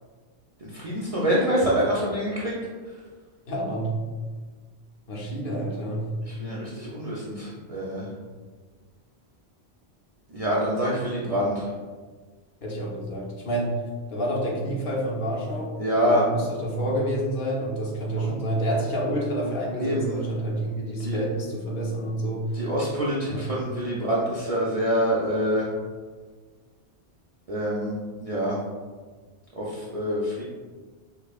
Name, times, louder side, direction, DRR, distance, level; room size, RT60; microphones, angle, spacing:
voice 1, 0.6-2.5 6.3-8.1 10.3-11.7 15.8-16.2 18.2-18.3 19.8-20.1 21.0-21.2 22.5-25.7 27.5-28.6 29.6-30.4, equal, 50° right, -7 dB, 0.4 m, -26 dB
voice 2, 3.5-4.0 5.1-6.1 12.6-13.8 14.1-15.8 16.1-22.6 23.3-23.5, right 1 dB, 60° left, -3 dB, 0.8 m, -28 dB
5.0 x 2.0 x 2.4 m, 1.5 s
omnidirectional pair, 1.1 m